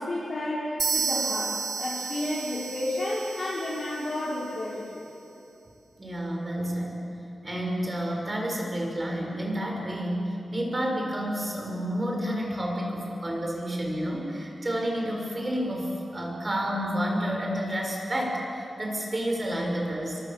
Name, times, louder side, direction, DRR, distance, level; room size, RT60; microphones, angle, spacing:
voice 1, 0.0-5.0, left 1 dB, 45° left, -7 dB, 5.3 m, -31 dB
sound 1, 0.8-4.6, right 5 dB, 60° right, 3.2 m, -32 dB
voice 2, 6.0-7.0 7.4-20.2, equal, 25° right, 0 dB, 6.3 m, -30 dB
29.5 x 24.0 x 7.6 m, 2.8 s
wide cardioid pair, 120°, 0 cm